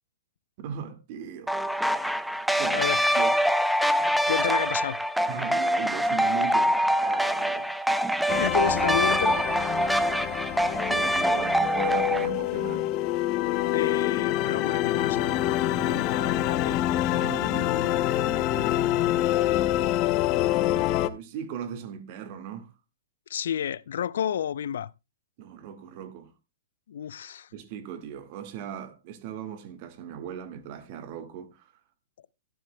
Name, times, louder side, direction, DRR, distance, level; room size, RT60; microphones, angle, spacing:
voice 1, 0.6-1.7 2.6-2.8 3.2-3.4 5.3-7.8 10.8-12.9 13.6-13.7 17.1-18.9 20.6-22.7 25.4-26.3 27.5-31.7, right 8 dB, 45° right, 1.9 m, -38 dB
sound 1, 1.5-12.3, equal, ahead, 0.6 m, -24 dB
voice 2, 2.6-3.0 4.3-5.0 8.3-9.4 13.7-16.8 23.3-24.9 26.9-27.5, left 9 dB, 70° left, 0.5 m, -31 dB
sound 2, 8.3-21.1, left 14 dB, 35° left, 0.8 m, -26 dB
14.0 x 12.0 x 2.2 m
hypercardioid pair, 125°, 0 cm